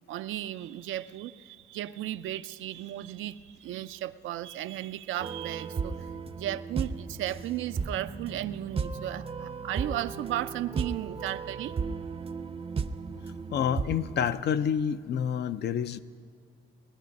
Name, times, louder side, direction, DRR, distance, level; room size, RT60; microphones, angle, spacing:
voice 1, 0.1-5.9 6.4-11.8, right 13 dB, 80° right, 12 dB, 0.5 m, -35 dB
sound 1, 5.2-14.3, right 5 dB, 30° right, 0.6 m, -35 dB
voice 2, 13.5-16.0, left 8 dB, 60° left, 12 dB, 0.5 m, -28 dB
19.5 x 11.0 x 5.3 m, 2.4 s
cardioid pair, 90°, 20 cm